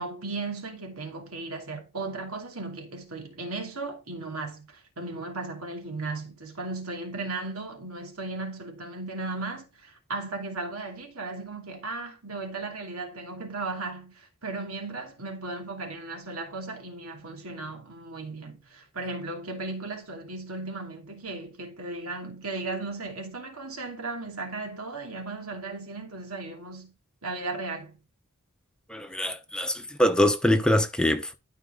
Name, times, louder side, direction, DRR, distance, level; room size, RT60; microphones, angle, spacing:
voice 1, 0.0-26.9 27.2-28.0, right 3 dB, 75° right, 2.7 m, -36 dB
voice 2, 28.9-31.3, left 1 dB, 5° left, 0.9 m, -24 dB
12.5 x 5.0 x 3.8 m
head